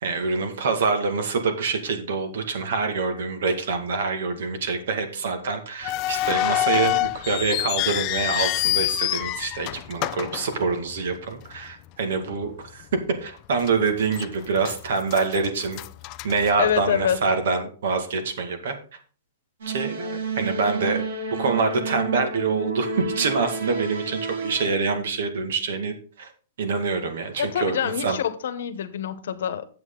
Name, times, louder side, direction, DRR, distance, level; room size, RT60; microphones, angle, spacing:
voice 1, 0.0-12.9 13.2-15.8 16.2-18.7 19.7-21.0 21.3-26.3 26.6-28.2, right 4 dB, 65° right, 2.0 m, -26 dB
sound 1, 5.8-11.2 11.5-11.6 12.3-12.5 13.0-13.1 13.7-14.3 14.6-17.1, left 15 dB, 25° left, 0.3 m, -27 dB
voice 2, 16.6-17.2 27.4-29.7, left 9 dB, 70° left, 1.0 m, -25 dB
sound 2, 19.6-24.7, right 3 dB, 85° right, 3.3 m, -30 dB
9.5 x 7.7 x 3.8 m
supercardioid pair, 180°, 0 cm